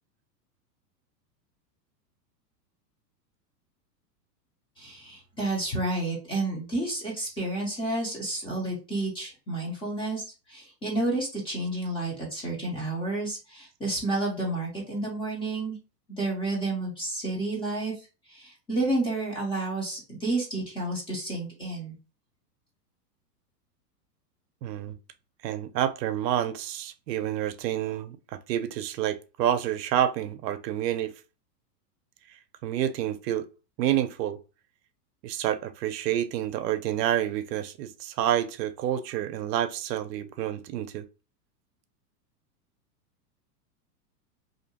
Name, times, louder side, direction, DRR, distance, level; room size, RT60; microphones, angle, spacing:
voice 1, 4.8-15.8 16.2-17.9 18.3-21.9, right 2 dB, 10° left, 0.5 m, -30 dB
voice 2, 24.6-25.0 25.4-28.2 28.5-31.1 32.6-33.4 33.8-34.4 35.2-41.0, right 11 dB, 80° right, 0.6 m, -28 dB
2.7 x 2.1 x 2.8 m
hypercardioid pair, 135°, 49 cm